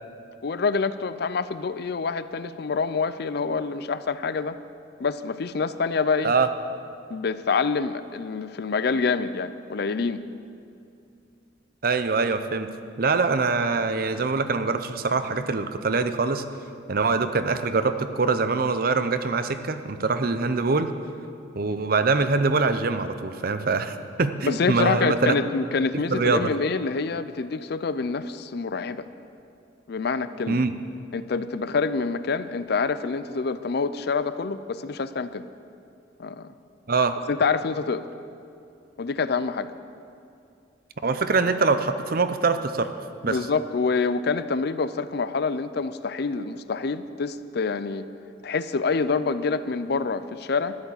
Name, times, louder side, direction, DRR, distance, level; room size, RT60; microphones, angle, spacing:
voice 1, 0.4-4.6 5.0-6.3 7.1-10.2 24.5-29.1 29.9-30.6 31.1-35.4 36.2-36.5 37.3-38.1 39.0-39.7 43.3-48.1 48.4-50.7, left 4 dB, 60° left, 13 dB, 0.5 m, -26 dB
voice 2, 11.8-12.7 13.0-16.4 16.9-20.9 21.5-25.3 25.9-26.5 30.5-30.7 36.9-37.2 41.0-42.9 43.2-43.4, right 4 dB, 55° right, 10 dB, 0.7 m, -24 dB
13.0 x 7.2 x 9.8 m, 2.5 s
head